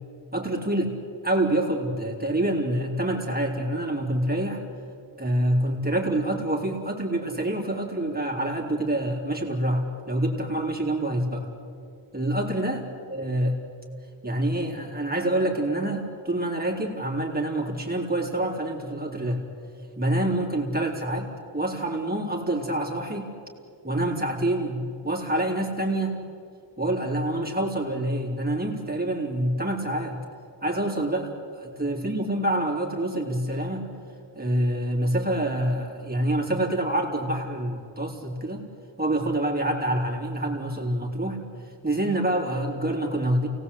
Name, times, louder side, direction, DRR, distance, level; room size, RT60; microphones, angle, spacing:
voice 1, 0.3-1.0 1.2-4.6 5.2-11.5 12.1-12.8 13.1-13.6 14.2-19.4 20.0-21.3 21.5-23.3 23.8-26.3 26.8-30.2 30.6-33.9 34.3-38.7 39.0-43.5, right 1 dB, 20° right, 0 dB, 3.4 m, -26 dB
28.5 x 19.0 x 8.3 m, 2.5 s
wide cardioid pair, 110°, 46 cm